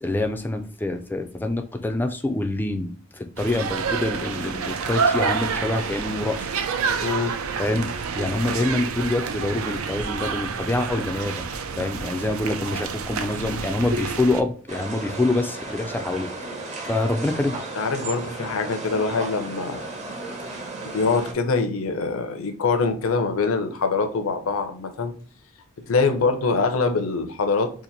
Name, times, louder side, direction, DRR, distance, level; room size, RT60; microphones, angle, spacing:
voice 1, 0.0-6.5 7.6-11.5 11.8-16.3 16.9-17.6, left 2 dB, 10° left, 6 dB, 0.3 m, -26 dB
sound 1, 3.4-14.4, right 5 dB, 80° right, 0.4 m, -28 dB
voice 2, 7.0-7.4 17.7-19.8 20.9-25.1 25.9-27.7, left 4 dB, 75° left, 7 dB, 0.6 m, -24 dB
sound 2, 14.7-21.3, right 2 dB, 35° right, 0.7 m, -34 dB
2.8 x 2.5 x 3.9 m, 0.42 s
head